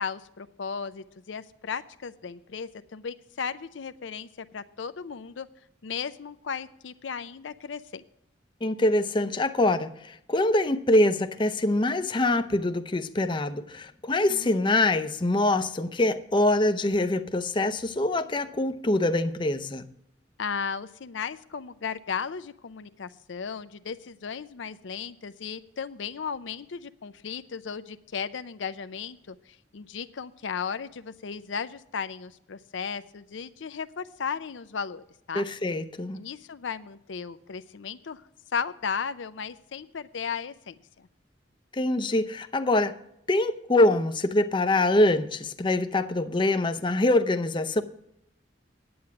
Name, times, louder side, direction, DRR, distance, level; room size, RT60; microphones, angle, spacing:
voice 1, 0.0-5.5 5.8-8.0 14.3-14.7 20.4-35.5 36.1-38.3 38.5-41.1, left 6 dB, 80° left, 0.5 m, -35 dB
voice 2, 8.6-19.9 35.3-36.2 41.7-42.9 43.3-47.8, left 2 dB, 25° left, 0.6 m, -24 dB
9.5 x 8.7 x 5.8 m
head